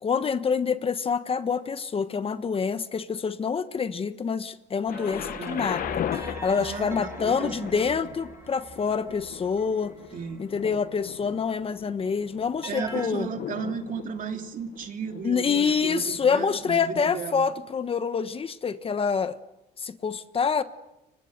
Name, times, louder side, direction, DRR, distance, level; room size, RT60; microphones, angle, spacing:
voice 1, 0.0-9.9 10.4-13.3 15.2-19.4 19.8-20.6, left 6 dB, 35° left, 1.2 m, -27 dB
Thunder, 4.9-16.7 17.5-17.6, left 10 dB, 55° left, 0.9 m, -38 dB
sound 1, 4.9-11.2 12.6-13.1, right 2 dB, 15° right, 3.9 m, -42 dB
voice 2, 6.6-7.9 10.1-10.5 12.6-17.5, right 6 dB, 50° right, 3.0 m, -35 dB
29.5 x 24.5 x 6.7 m
cardioid pair, 110°, 17 cm